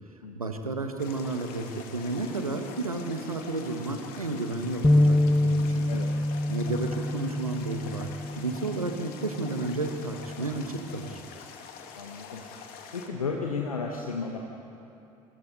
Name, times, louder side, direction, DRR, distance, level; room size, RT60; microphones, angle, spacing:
voice 1, 0.3-5.2 5.4-5.8 6.5-8.1 8.4-11.2, right 3 dB, 90° right, 6 dB, 1.3 m, -32 dB
sound 1, 1.0-13.1, left 6 dB, 60° left, 2.2 m, -45 dB
sound 2, 4.8-11.1, left 1 dB, 5° left, 0.8 m, -27 dB
voice 2, 11.9-12.4 12.9-14.4, left 4 dB, 85° left, 1 dB, 1.2 m, -33 dB
27.0 x 25.0 x 4.1 m, 2.7 s
figure-of-eight pair, 55°, 18 cm